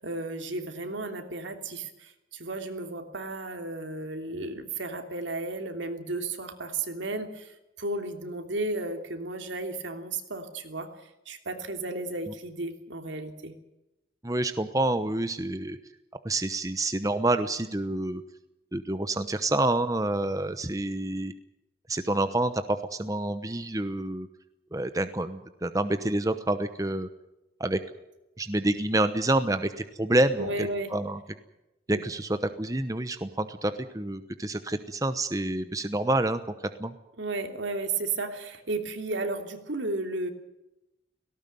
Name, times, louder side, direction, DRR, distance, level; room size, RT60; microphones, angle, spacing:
voice 1, 0.0-13.5 30.3-30.9 31.9-32.0 37.2-40.3, right 2 dB, 80° right, 5 dB, 3.1 m, -34 dB
voice 2, 14.2-15.8 16.2-18.2 18.7-21.3 21.9-22.6 22.9-24.3 24.7-27.1 27.6-27.8 28.4-31.2 31.9-36.4 36.8-36.9, right 2 dB, 20° right, 10 dB, 0.9 m, -28 dB
18.0 x 18.0 x 9.3 m, 0.92 s
head